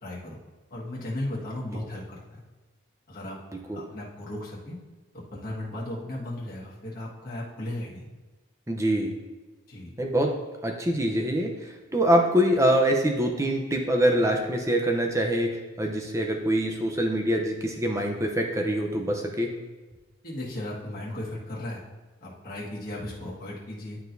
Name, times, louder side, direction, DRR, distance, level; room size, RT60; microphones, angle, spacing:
voice 1, 0.0-0.4 0.7-2.4 3.1-3.4 3.7-4.8 5.1-8.0 9.7-9.9 20.2-21.8 22.2-24.0, left 1 dB, 45° left, -5 dB, 1.6 m, -36 dB
voice 2, 3.5-3.8 8.7-9.1 10.0-10.3 10.6-19.5, equal, 15° right, 2 dB, 0.7 m, -24 dB
11.0 x 4.4 x 2.7 m, 1.3 s
head